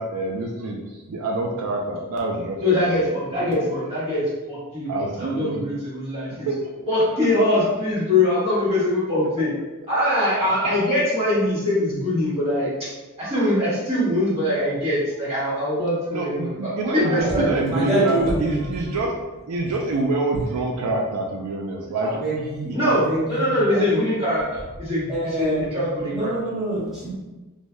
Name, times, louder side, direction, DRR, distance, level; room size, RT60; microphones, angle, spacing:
voice 1, 0.0-3.0 4.9-5.6 6.4-6.7 13.2-13.3 16.1-19.2 19.5-22.2, right 2 dB, 70° right, 0 dB, 0.4 m, -26 dB
voice 2, 2.6-6.5 6.9-9.5 9.9-12.9 13.2-17.6 22.7-26.3, left 1 dB, 30° right, -10 dB, 1.4 m, -23 dB
voice 3, 17.0-18.5 22.0-24.0 25.1-25.8 26.1-27.1, right 1 dB, ahead, -11 dB, 0.9 m, -26 dB
2.6 x 2.2 x 3.1 m, 1.1 s
head